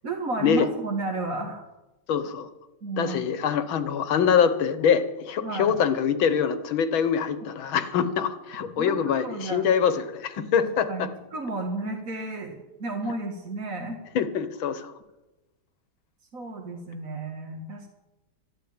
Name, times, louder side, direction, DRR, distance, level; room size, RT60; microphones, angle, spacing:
voice 1, 0.0-1.6 2.8-3.2 5.4-5.7 8.8-9.7 10.6-14.0 16.3-17.9, right 2 dB, 45° right, 0 dB, 2.1 m, -32 dB
voice 2, 2.1-2.5 3.0-11.1 14.2-14.9, left 7 dB, 75° left, 12 dB, 1.9 m, -24 dB
13.0 x 12.5 x 8.8 m, 1.0 s
omnidirectional pair, 2.2 m